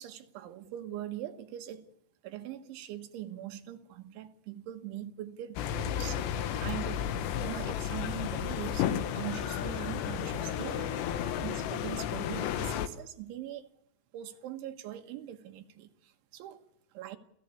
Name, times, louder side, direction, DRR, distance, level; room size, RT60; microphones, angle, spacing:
voice 1, 0.0-1.9 2.2-13.7 14.1-16.6 16.9-17.2, right 12 dB, 85° right, 3.9 m, -42 dB
sound 1, 5.6-12.9, left 9 dB, 75° left, 3.3 m, -33 dB
28.0 x 16.0 x 8.4 m
omnidirectional pair, 5.2 m